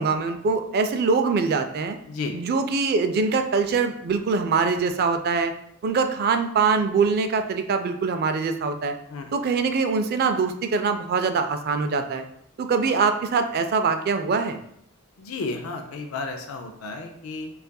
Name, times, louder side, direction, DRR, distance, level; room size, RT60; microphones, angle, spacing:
voice 1, 0.0-2.0 2.3-5.5 5.8-8.9 9.3-12.2 12.6-14.6, right 4 dB, 50° right, 8 dB, 0.3 m, -23 dB
voice 2, 15.2-17.5, left 3 dB, 90° left, 5 dB, 0.4 m, -32 dB
5.3 x 2.4 x 2.2 m, 0.73 s
head